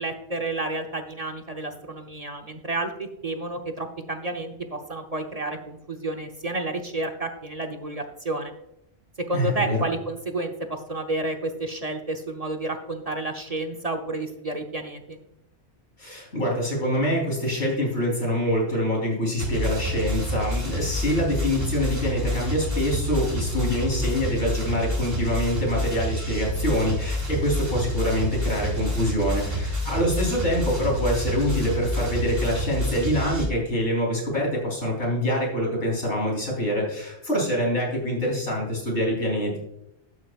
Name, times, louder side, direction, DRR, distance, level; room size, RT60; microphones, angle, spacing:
voice 1, 0.0-8.5 9.3-15.2, right 2 dB, 35° right, 4 dB, 0.9 m, -31 dB
voice 2, 9.3-9.8 16.0-39.6, equal, 80° left, -2 dB, 4.0 m, -25 dB
sound 1, 19.4-33.4, left 1 dB, 60° right, 3.0 m, -28 dB
12.5 x 9.2 x 2.4 m, 0.81 s
omnidirectional pair, 1.1 m